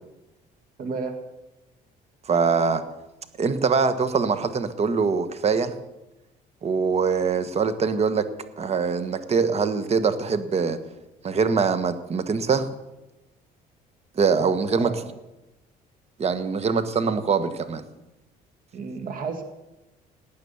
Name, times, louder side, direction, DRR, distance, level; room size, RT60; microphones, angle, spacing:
voice 1, 0.8-1.1 14.7-15.0 18.7-19.4, right 4 dB, 55° right, 6 dB, 2.1 m, -31 dB
voice 2, 2.3-2.8 3.4-5.7 6.6-8.3 8.6-10.8 11.2-12.7 14.2-14.9 16.2-17.8, right 5 dB, 40° right, 11 dB, 1.4 m, -23 dB
19.0 x 8.9 x 7.1 m, 0.98 s
cardioid pair, 110°, 17 cm